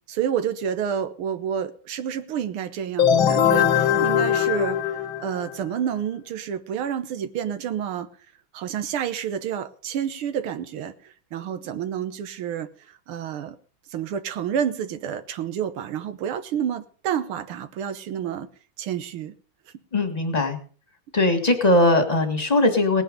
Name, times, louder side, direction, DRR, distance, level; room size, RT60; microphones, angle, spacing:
voice 1, 0.1-8.1 8.5-13.6 13.9-18.5 18.8-19.3, right 8 dB, 80° right, 1.8 m, -29 dB
sound 1, 3.0-5.7, left 9 dB, 75° left, 1.9 m, -21 dB
voice 2, 19.9-20.6 21.1-23.0, left 2 dB, 20° left, 1.7 m, -20 dB
19.0 x 9.1 x 5.2 m
omnidirectional pair, 2.3 m